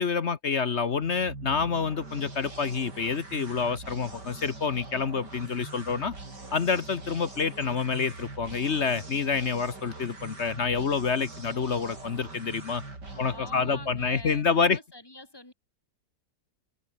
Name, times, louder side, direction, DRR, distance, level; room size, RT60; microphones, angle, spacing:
voice 1, 0.0-6.1 6.5-12.8 13.2-14.8, left 5 dB, 45° left, 1.2 m, -28 dB
sound 1, 0.9-14.6, right 3 dB, 60° right, 6.2 m, -43 dB
voice 2, 13.1-15.5, left 2 dB, 10° left, 4.4 m, -46 dB
omnidirectional pair, 2.0 m